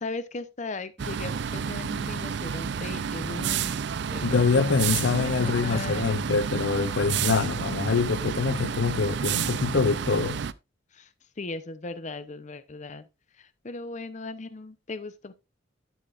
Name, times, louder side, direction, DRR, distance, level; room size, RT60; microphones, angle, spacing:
voice 1, 0.0-3.8 4.1-6.1 7.0-7.1 10.9-11.1 11.4-13.1 13.4-15.3, left 3 dB, 40° left, 0.7 m, -38 dB
sound 1, 1.0-10.5, right 7 dB, 65° right, 0.4 m, -30 dB
voice 2, 4.2-10.4, left 4 dB, 75° left, 0.5 m, -25 dB
11.5 x 7.3 x 2.5 m
head